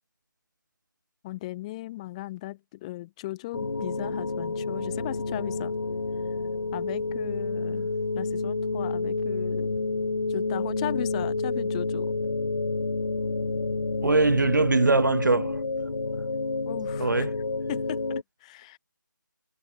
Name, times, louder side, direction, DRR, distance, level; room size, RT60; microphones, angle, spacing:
voice 1, 1.2-5.7 6.7-9.8 10.3-12.1 16.6-17.3 17.7-18.8, left 17 dB, 20° left, 7.4 m, -37 dB
sound 1, 3.5-18.2, left 3 dB, 60° left, 4.8 m, -29 dB
voice 2, 14.0-15.6 17.0-17.3, right 3 dB, 65° right, 4.2 m, -22 dB
figure-of-eight pair, 155°, 11 cm